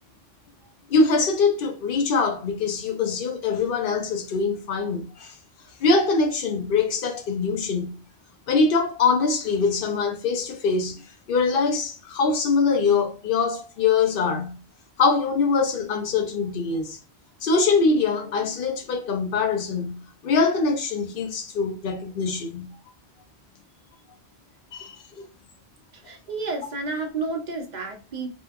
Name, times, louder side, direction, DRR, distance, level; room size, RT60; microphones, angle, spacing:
voice 1, 0.9-5.4 5.8-8.0 8.5-11.0 11.3-14.6 15.0-17.0 17.4-22.7 24.7-25.0, left 4 dB, 60° left, 0.8 m, -23 dB
voice 2, 25.9-28.3, right 3 dB, 50° right, 0.7 m, -31 dB
2.7 x 2.4 x 2.3 m
omnidirectional pair, 1.1 m